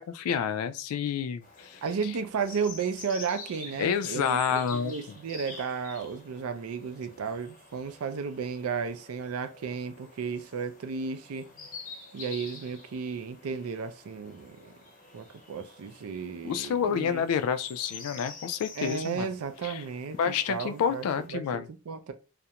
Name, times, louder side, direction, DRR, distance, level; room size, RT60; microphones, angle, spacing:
voice 1, 0.0-1.8 3.8-4.9 16.4-19.3 19.6-19.8 20.2-21.7, left 7 dB, 80° left, 0.3 m, -29 dB
sound 1, 1.4-21.3, left 3 dB, 35° left, 0.6 m, -48 dB
voice 2, 1.8-11.5 12.1-14.7 15.1-17.2 18.8-22.1, right 5 dB, 80° right, 0.4 m, -34 dB
2.4 x 2.1 x 2.8 m
head